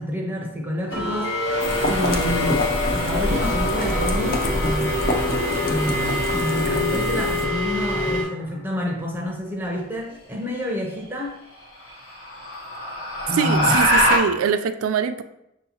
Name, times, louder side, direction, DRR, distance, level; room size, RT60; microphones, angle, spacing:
voice 1, 0.0-1.6 1.9-2.7 2.9-5.1 5.6-11.4 13.3-13.8, left 1 dB, 10° right, -1 dB, 0.5 m, -28 dB
sound 1, 0.9-8.2, left 1 dB, 60° left, 1.2 m, -25 dB
sound 2, 1.6-7.5, left 1 dB, 45° left, 0.5 m, -29 dB
sound 3, 2.0-5.5 7.8-8.3 10.4-10.5 11.0-11.1 11.6-14.2, equal, 85° left, 0.9 m, -25 dB
voice 2, 13.4-15.2, right 7 dB, 80° right, 10 dB, 0.3 m, -23 dB
6.2 x 2.7 x 2.8 m, 0.84 s
head